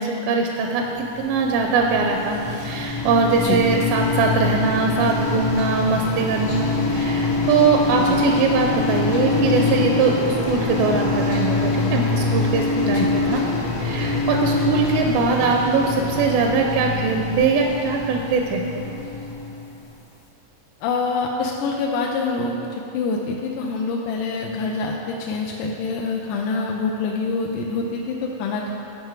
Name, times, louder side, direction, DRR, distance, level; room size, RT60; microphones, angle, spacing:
voice 1, 0.0-13.4 13.8-18.6, right 4 dB, 85° right, 2 dB, 2.4 m, -21 dB
sound 1, 0.9-19.9, left 3 dB, 60° left, 1.7 m, -24 dB
voice 2, 20.8-28.7, left 4 dB, 80° left, -1 dB, 1.9 m, -26 dB
9.6 x 5.5 x 4.7 m, 2.7 s
omnidirectional pair, 4.1 m